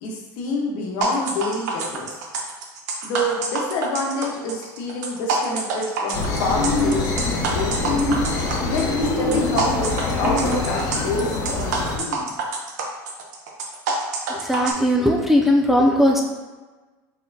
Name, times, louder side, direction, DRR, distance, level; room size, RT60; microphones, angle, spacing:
voice 1, 0.0-2.1 3.0-7.1 7.5-8.0 8.6-12.3, left 2 dB, 65° left, -1 dB, 1.0 m, -27 dB
sound 1, 1.0-14.7, right 4 dB, 90° right, 0.7 m, -27 dB
sound 2, 6.1-12.0, left 3 dB, 40° left, 0.9 m, -24 dB
voice 2, 14.3-16.2, left 1 dB, ahead, 0 dB, 0.4 m, -18 dB
4.2 x 3.7 x 2.7 m, 1.3 s
supercardioid pair, 130°, 9 cm